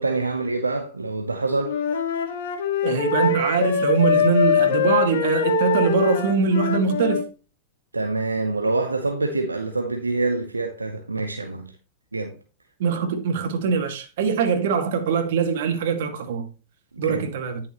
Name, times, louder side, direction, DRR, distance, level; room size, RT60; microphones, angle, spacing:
voice 1, 0.0-1.8 7.9-11.7 12.1-12.3 16.9-17.2, right 3 dB, 90° right, 0.9 m, -26 dB
Wind instrument woodwind instrument, 1.6-7.3, left 6 dB, 65° left, 1.7 m, -23 dB
voice 2, 2.8-7.2 12.8-16.5 17.0-17.6, right 6 dB, 60° right, 2.0 m, -22 dB
10.5 x 6.9 x 3.0 m
figure-of-eight pair, 100°, 0 cm